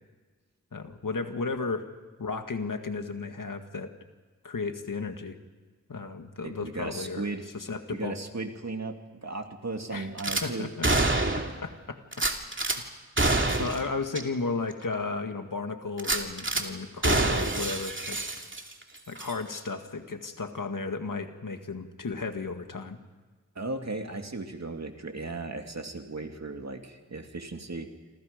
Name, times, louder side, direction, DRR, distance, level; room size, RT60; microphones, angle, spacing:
voice 1, 0.7-1.8 2.2-3.9 4.4-5.4 5.9-7.2 7.5-8.1 9.9-10.1 10.4-11.0 11.3-12.2 12.7-12.8 13.6-18.2 19.1-23.0, left 4 dB, 90° left, 6 dB, 2.0 m, -34 dB
voice 2, 6.4-7.5 7.9-9.0 9.2-10.7 23.6-27.9, right 3 dB, 55° right, 4 dB, 2.6 m, -36 dB
Gunshot gunfire / Glass, 10.2-10.4 10.8-11.6 12.1-12.8 13.2-13.8 14.1-14.2 14.7-14.8 16.0-16.6 17.0-18.8 19.2-19.3, right 2 dB, 40° right, 2.7 m, -26 dB
28.0 x 26.5 x 5.3 m, 1.4 s
wide cardioid pair, 50°, 31 cm